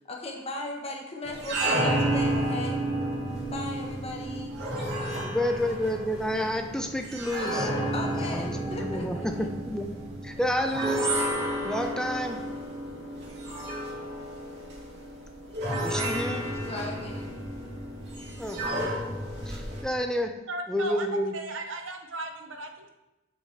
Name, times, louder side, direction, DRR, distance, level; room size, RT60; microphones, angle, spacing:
voice 1, 0.1-2.8 3.5-4.5 7.9-9.5 15.9-17.3, left 2 dB, 30° left, 0 dB, 1.3 m, -37 dB
sound 1, 1.2-19.8, right 1 dB, 55° right, 2.6 m, -31 dB
voice 2, 5.3-7.7 8.2-8.5 8.8-9.9 10.2-11.1 11.6-12.4 15.8-16.4 18.4-18.9 19.5-20.3 20.7-21.3, equal, 5° left, 5 dB, 0.6 m, -30 dB
voice 3, 20.5-22.9, right 2 dB, 70° right, 5 dB, 1.0 m, -36 dB
7.4 x 5.8 x 4.7 m, 0.98 s
head